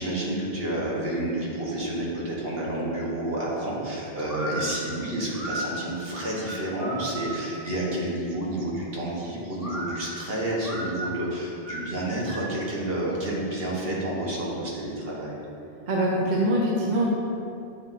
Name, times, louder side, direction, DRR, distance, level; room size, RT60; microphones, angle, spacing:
voice 1, 0.0-15.4, right 1 dB, 70° right, -5 dB, 1.5 m, -30 dB
sound 1, 4.2-7.6 9.6-12.7, right 1 dB, 15° left, 1.4 m, -35 dB
voice 2, 15.9-17.1, right 1 dB, 50° right, -3 dB, 0.8 m, -23 dB
8.6 x 3.4 x 4.0 m, 2.6 s
omnidirectional pair, 1.0 m